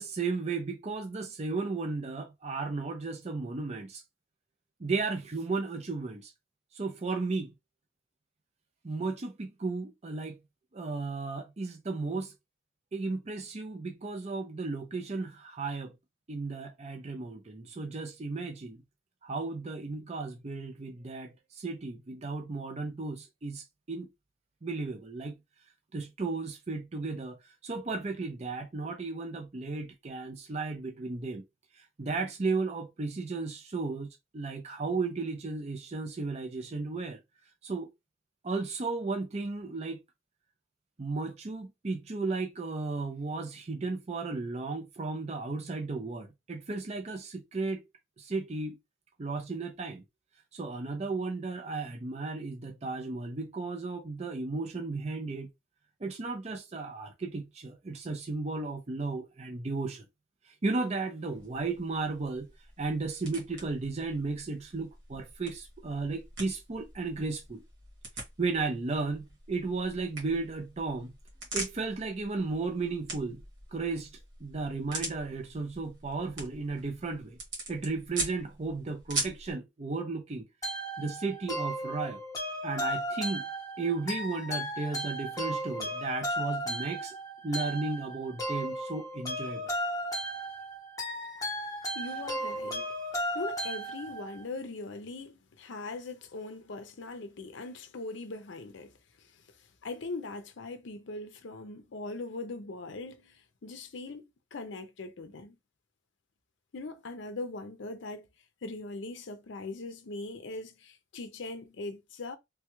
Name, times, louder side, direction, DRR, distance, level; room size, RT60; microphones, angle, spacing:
voice 1, 0.0-4.0 4.8-6.3 6.7-7.5 8.8-10.4 10.7-12.3 12.9-15.9 16.3-18.8 19.2-24.1 24.6-25.3 25.9-31.4 31.8-34.1 34.3-37.2 37.6-37.9 38.4-40.0 41.0-47.8 48.2-48.8 49.2-50.0 50.5-55.5 56.0-60.0 60.6-62.5 62.8-67.6 68.4-71.1 71.5-73.4 73.7-77.4 77.7-80.5 81.0-82.2 82.6-83.4 83.8-87.2 87.4-89.6, right 3 dB, 35° right, 0.5 m, -34 dB
sound 1, 61.3-79.5, right 2 dB, 60° right, 1.7 m, -42 dB
sound 2, 80.6-94.4, equal, 15° left, 0.9 m, -35 dB
voice 2, 91.9-92.9 93.3-99.6 99.8-105.6 106.7-108.3 108.6-112.4, left 3 dB, 65° left, 0.5 m, -41 dB
3.3 x 2.3 x 3.0 m
head